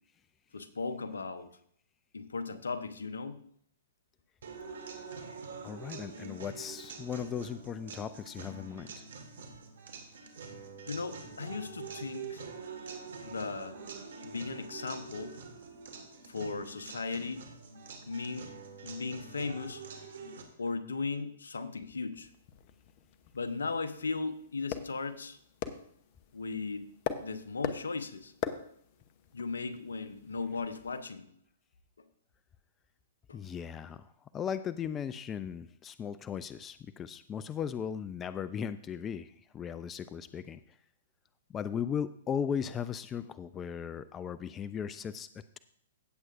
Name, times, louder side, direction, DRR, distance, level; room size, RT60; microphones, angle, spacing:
voice 1, 0.5-1.5 2.1-3.4 10.9-12.4 13.2-13.8 14.2-15.3 16.3-17.4 18.1-18.5 18.8-19.8 20.6-22.3 23.3-25.4 26.3-26.9 27.2-28.3 29.3-31.3 33.3-33.4, left 4 dB, 80° left, 10 dB, 0.9 m, -37 dB
sound 1, 4.4-20.4, right 5 dB, 65° right, 1.7 m, -45 dB
voice 2, 5.6-9.0 33.3-34.1 34.3-40.6 41.5-45.3, left 8 dB, 20° left, 14 dB, 0.4 m, -37 dB
sound 2, 22.2-31.0, left 8 dB, 40° left, 0.8 m, -43 dB
16.5 x 7.7 x 2.5 m, 0.66 s
figure-of-eight pair, 115°, 0 cm